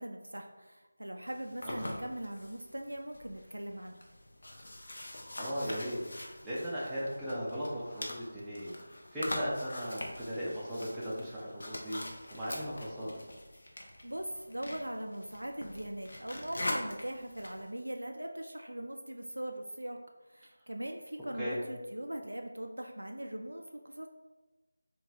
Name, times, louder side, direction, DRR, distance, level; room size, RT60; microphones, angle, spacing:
voice 1, 0.0-4.0 14.0-20.0 20.3-24.1, right 1 dB, 80° right, 3 dB, 0.3 m, -40 dB
sound 1, 1.3-17.7, left 1 dB, 55° left, 0.6 m, -44 dB
voice 2, 5.0-8.7 9.1-12.0 12.3-13.1 21.4-21.6, equal, 5° right, -11 dB, 0.5 m, -37 dB
3.7 x 2.2 x 2.7 m, 1.2 s
figure-of-eight pair, 165°, 0 cm